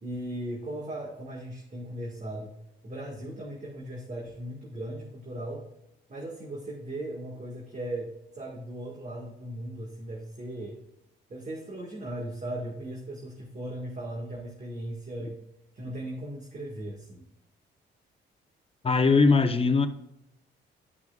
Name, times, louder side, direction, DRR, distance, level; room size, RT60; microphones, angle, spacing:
voice 1, 0.0-2.5 2.8-5.6 6.1-10.8 11.3-15.4 15.7-17.3, right 1 dB, 35° right, 1.8 m, -37 dB
voice 2, 18.8-19.9, left 4 dB, 30° left, 0.9 m, -20 dB
12.5 x 5.8 x 2.4 m
cardioid pair, 90°, 20 cm